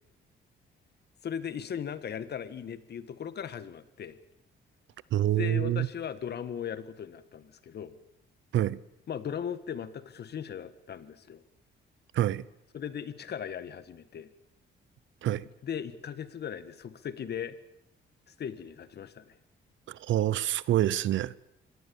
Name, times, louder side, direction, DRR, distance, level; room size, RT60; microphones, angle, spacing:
voice 1, 1.2-4.2 5.4-7.9 9.1-11.4 12.7-14.3 15.6-17.6 18.4-19.4, left 8 dB, 55° left, 1.7 m, -38 dB
voice 2, 5.1-5.9 8.5-8.8 12.1-12.4 15.2-15.4 19.9-21.3, right 13 dB, 75° right, 0.8 m, -26 dB
25.0 x 18.0 x 7.2 m
cardioid pair, 90°, 20 cm